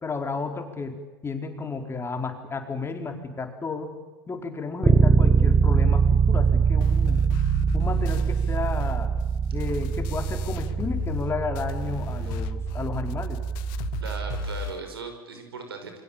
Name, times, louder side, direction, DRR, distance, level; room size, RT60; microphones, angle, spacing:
voice 1, 0.0-4.0 4.3-7.2 7.7-9.1 9.5-13.4, left 4 dB, 20° left, 5 dB, 4.4 m, -32 dB
Bass guitar, 4.8-14.7, right 5 dB, 15° right, 1.4 m, -23 dB
sound 1, 6.8-11.3 11.6-14.8, left 16 dB, 60° left, 1.6 m, -37 dB
voice 2, 14.0-16.0, right 4 dB, 85° right, 6 dB, 5.6 m, -38 dB
28.5 x 23.0 x 7.4 m, 1.3 s
hypercardioid pair, 80°, 12 cm